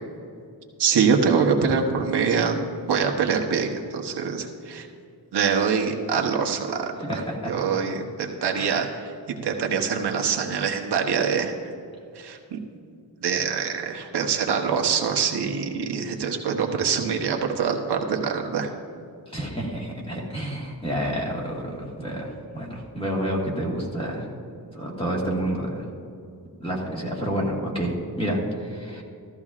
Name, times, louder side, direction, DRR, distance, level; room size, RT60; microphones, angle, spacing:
voice 1, 0.8-2.6 2.9-4.9 5.3-6.9 7.4-11.7 12.1-12.6 13.2-18.7, right 6 dB, 80° right, 2 dB, 1.1 m, -24 dB
voice 2, 7.0-7.5 8.5-8.8 19.3-24.3 24.7-25.9 26.6-29.0, equal, 15° left, -3 dB, 1.7 m, -29 dB
15.0 x 14.0 x 2.5 m, 2.4 s
wide cardioid pair, 175°, 40 cm